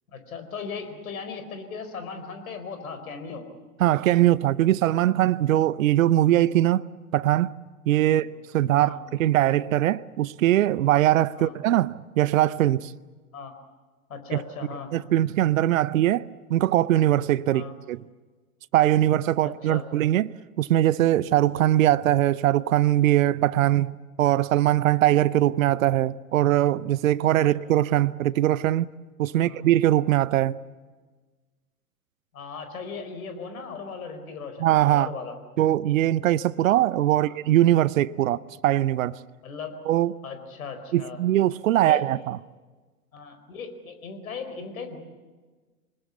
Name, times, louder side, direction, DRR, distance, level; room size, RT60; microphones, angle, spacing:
voice 1, 0.1-3.4 8.1-8.3 8.8-9.0 11.4-11.5 13.3-13.5 14.1-14.9 17.5-17.7 19.4-19.9 27.4-27.5 29.3-29.6 32.3-35.4 37.2-37.4 39.4-39.8 40.2-41.2 41.8-42.0 43.1-45.0, left 5 dB, 65° left, 4.7 m, -37 dB
voice 2, 3.8-6.8 7.1-7.5 7.9-8.3 8.5-12.9 14.3-14.4 14.9-18.0 18.7-23.9 24.2-28.9 29.2-30.6 34.6-35.1 35.6-39.1 39.9-40.1 40.9-42.4, right 13 dB, 60° right, 0.7 m, -21 dB
25.0 x 20.0 x 8.3 m
figure-of-eight pair, 110°, 45 cm